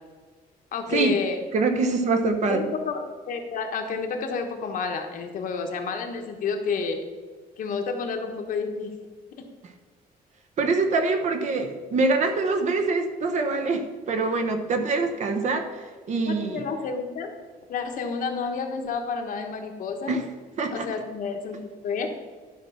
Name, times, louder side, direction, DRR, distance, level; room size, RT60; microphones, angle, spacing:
voice 1, 0.7-1.4 2.5-7.1 7.6-8.9 16.3-17.3 17.7-20.2 20.7-22.1, left 5 dB, 60° left, 4 dB, 1.4 m, -30 dB
voice 2, 1.5-2.7 10.6-16.6 20.1-20.2 20.6-20.9, right 3 dB, 50° right, 7 dB, 1.1 m, -24 dB
11.5 x 6.0 x 5.7 m, 1.4 s
cardioid pair, 175°, 16 cm